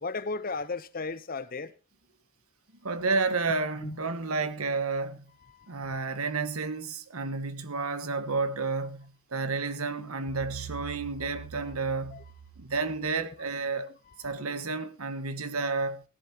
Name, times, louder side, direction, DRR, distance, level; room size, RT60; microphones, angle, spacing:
voice 1, 0.0-1.7 3.8-4.0 5.5-6.0 11.2-11.4 12.1-12.2, left 3 dB, 40° left, 0.8 m, -35 dB
voice 2, 2.8-5.2 5.7-12.2 12.6-13.9 14.2-16.0, right 4 dB, 90° right, 1.5 m, -31 dB
sound 1, 10.3-13.4, right 6 dB, 70° right, 1.3 m, -45 dB
16.5 x 14.5 x 2.9 m
head